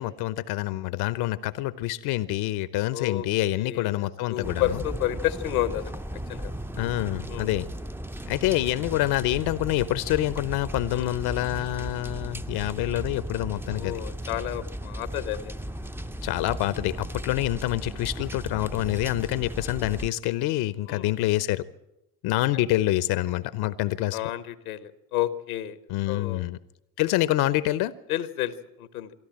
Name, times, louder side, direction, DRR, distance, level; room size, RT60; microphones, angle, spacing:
voice 1, 0.0-4.8 6.8-7.7 8.3-14.0 16.2-21.6 22.2-24.2 25.9-26.6 27.0-27.9, left 15 dB, 60° left, 17 dB, 0.8 m, -26 dB
voice 2, 2.9-3.2 3.6-6.0 6.3-6.5 7.3-7.5 10.9-11.1 13.7-15.5 20.9-21.1 24.1-25.8 26.1-26.4 28.1-29.1, left 13 dB, 85° left, 15 dB, 1.1 m, -31 dB
sound 1, 4.4-20.1, equal, 5° right, 0.7 m, -36 dB
24.5 x 13.0 x 8.8 m, 0.91 s
hypercardioid pair, 50°, 42 cm